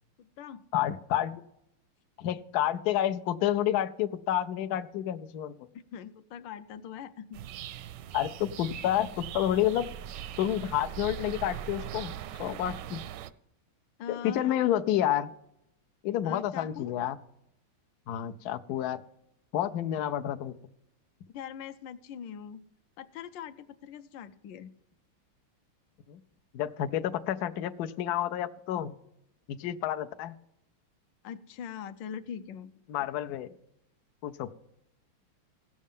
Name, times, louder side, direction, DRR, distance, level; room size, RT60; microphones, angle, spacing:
voice 1, 0.2-0.6 5.7-7.5 14.0-14.6 16.2-16.9 21.3-22.6 23.0-24.7 31.2-32.7 33.0-33.1, left 8 dB, 75° left, 10 dB, 1.2 m, -42 dB
voice 2, 0.7-1.4 2.2-5.5 8.1-9.9 10.4-12.1 12.4-13.0 14.1-15.3 16.0-17.2 18.1-19.0 19.5-20.5 26.1-26.2 26.5-28.9 29.5-30.3 32.9-33.5 34.2-34.6, left 11 dB, 90° left, 8 dB, 0.8 m, -29 dB
sound 1, 7.3-13.3, right 11 dB, 75° right, 1.0 m, -40 dB
16.5 x 6.4 x 5.4 m, 0.80 s
omnidirectional pair, 2.4 m